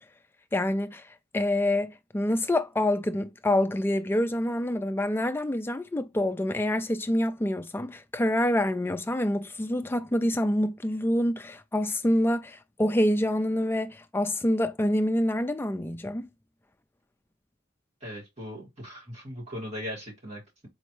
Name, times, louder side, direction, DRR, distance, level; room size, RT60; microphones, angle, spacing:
voice 1, 0.5-1.1 1.3-16.3, left 1 dB, 10° left, 0.4 m, -26 dB
voice 2, 18.0-20.7, equal, 35° right, 2.0 m, -39 dB
4.3 x 3.0 x 3.1 m
head